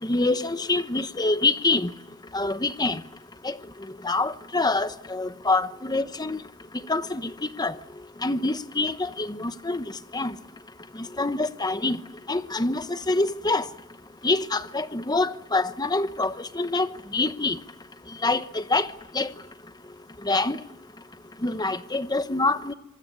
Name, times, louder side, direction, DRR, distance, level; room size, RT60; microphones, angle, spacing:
voice 1, 0.0-1.9 2.3-3.0 3.4-3.6 4.0-6.4 6.9-7.3 7.6-7.8 8.2-9.8 10.1-10.3 11.0-12.0 12.3-13.7 14.2-17.6 18.2-18.9 19.1-19.3 20.2-20.6 21.4-22.7, left 2 dB, 20° left, 1.0 m, -25 dB
25.5 x 20.5 x 9.8 m
head